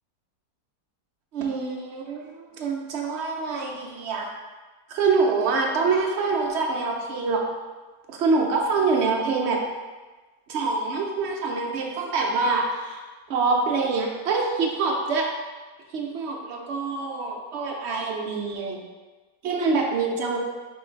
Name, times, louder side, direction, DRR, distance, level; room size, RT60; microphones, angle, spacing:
voice 1, 1.3-4.3 4.9-7.4 8.1-9.6 10.5-13.0 13.3-15.3 15.9-18.8 19.4-20.4, right 4 dB, 60° right, 0 dB, 0.7 m, -25 dB
3.8 x 3.1 x 4.3 m, 1.3 s
omnidirectional pair, 1.7 m